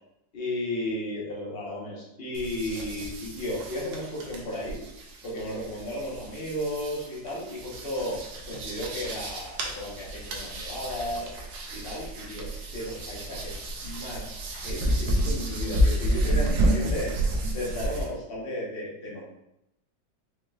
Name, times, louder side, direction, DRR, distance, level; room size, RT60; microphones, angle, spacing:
voice 1, 0.3-4.8 5.2-11.3 11.7-17.1 17.5-19.2, left 1 dB, 35° left, -5 dB, 1.1 m, -34 dB
sound 1, 2.3-18.1, right 1 dB, 80° right, 1.4 m, -30 dB
5.0 x 3.1 x 2.4 m, 0.85 s
omnidirectional pair, 2.0 m